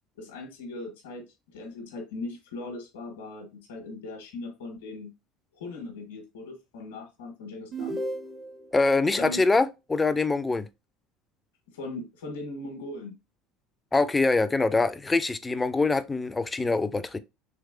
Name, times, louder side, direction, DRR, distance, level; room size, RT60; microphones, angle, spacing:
voice 1, 0.2-5.1 5.5-8.0 9.2-9.4 11.7-13.2, left 2 dB, 90° left, 1.1 m, -39 dB
sound 1, 7.7-8.8, right 1 dB, 30° right, 0.7 m, -34 dB
voice 2, 8.7-10.7 13.9-17.2, left 3 dB, 15° left, 0.4 m, -24 dB
3.4 x 3.0 x 2.4 m
supercardioid pair, 85°, 0 cm